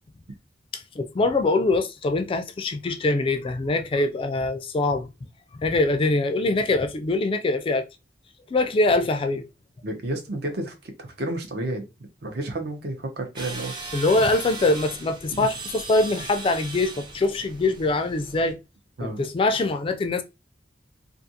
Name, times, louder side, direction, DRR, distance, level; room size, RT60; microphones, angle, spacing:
voice 1, 0.7-5.1 5.6-7.9 8.5-9.5 13.9-18.6 19.0-20.2, left 2 dB, 30° left, 0.3 m, -23 dB
voice 2, 9.8-11.8 12.2-13.7 15.3-15.5 19.0-19.2, right 1 dB, 60° right, 0.7 m, -31 dB
sound 1, 13.4-18.5, right 3 dB, 25° right, 0.6 m, -38 dB
2.4 x 2.4 x 2.7 m
head